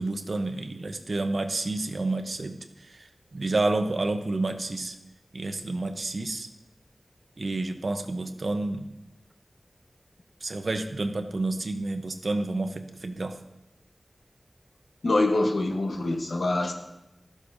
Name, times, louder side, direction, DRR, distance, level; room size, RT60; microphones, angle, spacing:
voice 1, 0.0-2.6 2.8-5.0 5.3-6.5 7.4-8.9 10.4-13.4, right 2 dB, 75° right, 7 dB, 0.7 m, -29 dB
voice 2, 15.0-16.7, left 2 dB, 90° left, 3 dB, 1.0 m, -25 dB
13.5 x 7.2 x 2.6 m, 0.92 s
wide cardioid pair, 50°, 0 cm